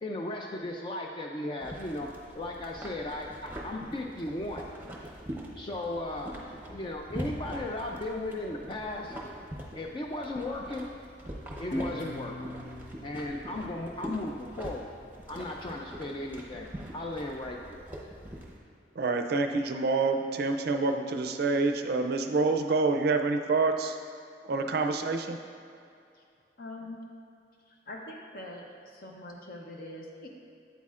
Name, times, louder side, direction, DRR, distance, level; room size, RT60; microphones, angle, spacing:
voice 1, 0.0-2.1 2.3-4.6 5.6-6.4 6.7-9.1 9.7-10.9 11.6-12.3 13.0-14.9 15.3-17.8, left 2 dB, 30° left, 0 dB, 0.4 m, -36 dB
sound 1, 1.6-18.6, right 1 dB, 10° right, 0.8 m, -43 dB
Guitar, 11.7-14.9, left 1 dB, 75° left, 0.9 m, -41 dB
voice 2, 19.0-24.0 24.4-25.4, right 3 dB, 60° right, 6 dB, 0.4 m, -27 dB
voice 3, 26.6-27.0 27.7-30.3, left 1 dB, 55° left, 0 dB, 0.7 m, -43 dB
8.3 x 8.2 x 2.4 m, 2.5 s
head